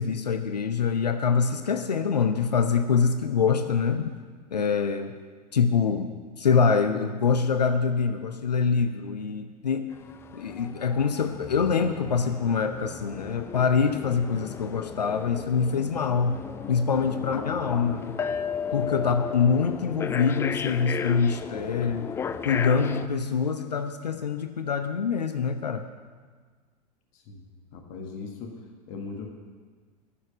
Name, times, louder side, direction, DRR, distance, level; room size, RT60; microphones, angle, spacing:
voice 1, 0.0-4.1 4.5-5.2 5.5-9.9 10.3-18.1 18.7-22.1 22.4-25.9, left 5 dB, 75° left, 9 dB, 0.7 m, -25 dB
sound 1, 9.9-23.1, left 7 dB, 10° left, 0.3 m, -35 dB
voice 2, 17.0-17.8 18.7-19.1 27.1-29.3, left 4 dB, 45° left, 3 dB, 1.6 m, -40 dB
13.0 x 6.5 x 8.0 m, 1.5 s
figure-of-eight pair, 90°, 21 cm